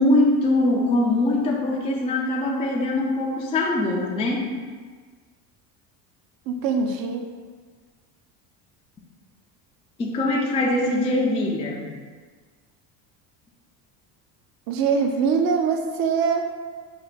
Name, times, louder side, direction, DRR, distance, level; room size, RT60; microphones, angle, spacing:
voice 1, 0.0-4.5 10.0-11.9, left 2 dB, 15° left, -2 dB, 0.3 m, -22 dB
voice 2, 6.5-7.2 14.7-16.5, right 5 dB, 45° right, 4 dB, 0.6 m, -23 dB
4.5 x 2.1 x 3.9 m, 1.5 s
supercardioid pair, 95°, 50 cm